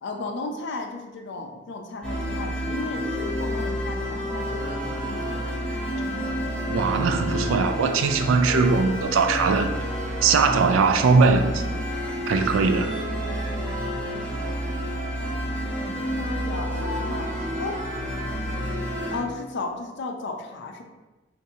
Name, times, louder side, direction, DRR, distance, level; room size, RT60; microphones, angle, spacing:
voice 1, 0.0-5.5 16.2-17.3 17.6-17.8 19.1-20.8, left 3 dB, 60° left, 4 dB, 0.4 m, -34 dB
sound 1, 2.0-19.2, equal, 5° left, 0.8 m, -29 dB
voice 2, 6.7-9.7 10.2-11.6 12.3-12.9, right 4 dB, 85° right, 7 dB, 0.4 m, -20 dB
2.6 x 2.5 x 4.1 m, 1.1 s
head